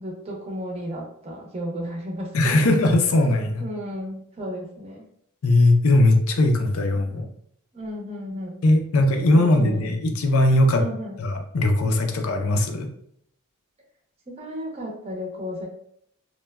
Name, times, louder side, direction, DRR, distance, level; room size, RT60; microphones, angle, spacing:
voice 1, 0.0-2.7 3.6-5.0 7.7-8.6 9.3-9.9 10.8-11.2 14.3-15.7, equal, 30° right, -1 dB, 0.6 m, -33 dB
voice 2, 2.3-3.6 5.4-7.3 8.6-10.8 11.2-12.9, left 1 dB, 70° left, 4 dB, 0.4 m, -19 dB
3.1 x 2.1 x 2.2 m, 0.70 s
head